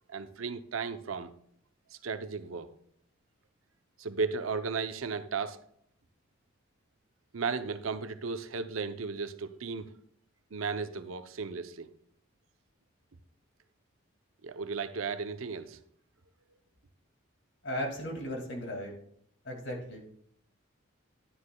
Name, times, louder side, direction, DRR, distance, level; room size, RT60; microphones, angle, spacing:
voice 1, 0.1-1.3 2.0-2.7 4.0-5.6 7.3-9.9 10.5-11.9 14.4-15.8, right 4 dB, 85° right, 10 dB, 0.7 m, -35 dB
voice 2, 17.6-18.9 19.4-20.0, equal, 60° left, 1 dB, 2.2 m, -36 dB
11.0 x 9.6 x 2.2 m, 0.65 s
head